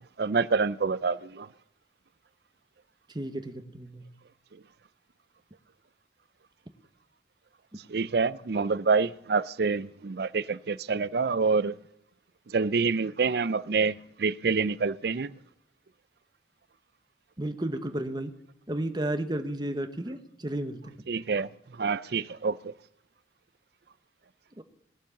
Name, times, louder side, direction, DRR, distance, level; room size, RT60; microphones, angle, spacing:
voice 1, 0.2-1.5 7.9-11.7 12.5-15.3 21.1-21.5 21.8-22.7, right 4 dB, 60° right, 0.5 m, -27 dB
voice 2, 3.1-4.0 17.4-18.3 18.7-20.9 24.6-24.7, right 1 dB, 25° right, 1.0 m, -32 dB
19.5 x 7.3 x 7.1 m
head